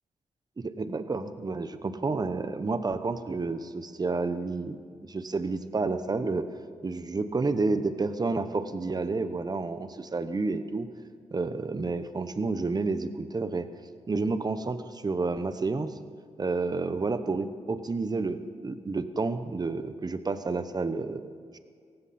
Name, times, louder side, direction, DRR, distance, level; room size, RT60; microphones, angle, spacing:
voice 1, 0.6-6.5 6.8-10.9 11.3-13.7 14.1-15.9 16.4-21.6, right 3 dB, 30° right, 11 dB, 0.9 m, -30 dB
17.5 x 16.0 x 4.3 m, 2.1 s
cardioid pair, 85°, 13 cm